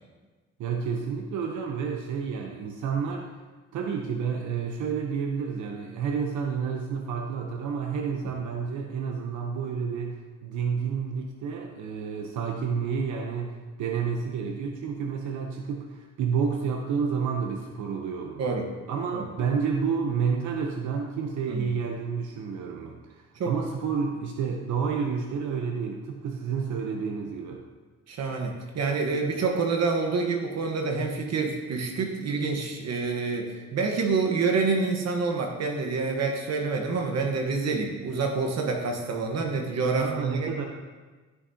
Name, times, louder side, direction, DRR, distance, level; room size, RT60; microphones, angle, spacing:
voice 1, 0.6-3.3 3.7-18.4 18.9-27.6 40.0-40.6, right 6 dB, 80° right, 2 dB, 0.9 m, -30 dB
voice 2, 28.1-40.5, right 4 dB, 60° right, 2 dB, 1.2 m, -27 dB
14.5 x 6.3 x 2.8 m, 1.3 s
cardioid pair, 115°, 29 cm